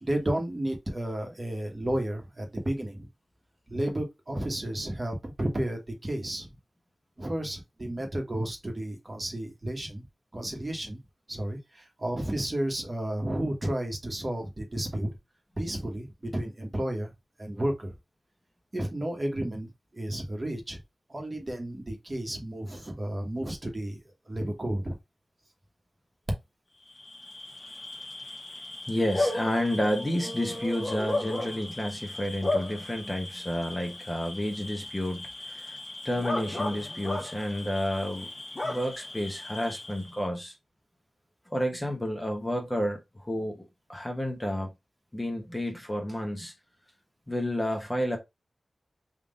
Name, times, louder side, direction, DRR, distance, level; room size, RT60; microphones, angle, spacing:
voice 1, 0.0-3.1 3.7-6.5 7.2-10.0 10.3-11.0 11.3-15.1 15.6-17.1 17.4-17.9 18.7-20.8 21.1-24.0 24.3-25.0, right 1 dB, 30° right, 1.2 m, -32 dB
Bark / Cricket, 26.9-40.2, left 2 dB, 35° left, 1.1 m, -35 dB
voice 2, 28.9-35.8 36.0-38.3 38.6-40.5 41.5-44.7 45.1-46.5 47.3-48.2, equal, 15° left, 0.9 m, -30 dB
3.7 x 2.5 x 3.7 m
wide cardioid pair, 100°, 0 cm